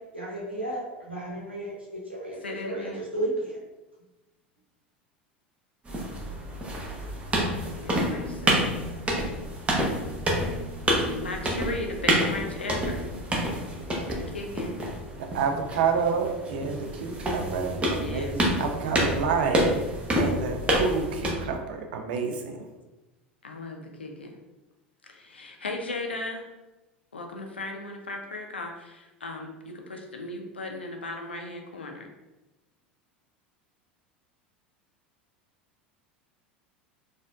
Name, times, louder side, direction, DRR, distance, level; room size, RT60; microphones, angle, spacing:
voice 1, 0.1-3.6, right 1 dB, 90° right, -6 dB, 1.0 m, -33 dB
voice 2, 2.4-3.0 7.6-8.8 11.1-13.1 14.3-14.8 17.9-18.3 23.4-24.4 25.0-26.5 27.1-32.1, left 2 dB, 80° left, 2 dB, 0.5 m, -37 dB
sound 1, 5.8-21.3, equal, 20° right, 0.8 m, -28 dB
voice 3, 15.2-22.6, right 5 dB, 60° right, 4 dB, 0.5 m, -29 dB
4.1 x 2.5 x 2.3 m, 1.1 s
figure-of-eight pair, 75°, 6 cm